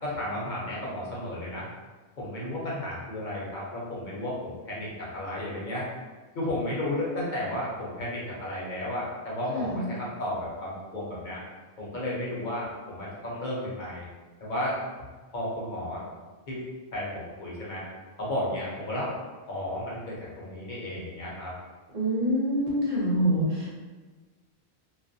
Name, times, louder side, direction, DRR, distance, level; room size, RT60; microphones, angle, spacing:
voice 1, 0.0-1.7 2.2-5.9 6.3-11.4 11.8-14.0 14.4-16.0 16.5-16.6 16.9-17.8 18.2-19.1 19.5-21.5, left 1 dB, 50° left, -6 dB, 0.7 m, -33 dB
voice 2, 9.5-9.9 21.9-23.8, equal, 40° right, -6 dB, 0.7 m, -26 dB
2.3 x 2.1 x 2.6 m, 1.3 s
omnidirectional pair, 1.1 m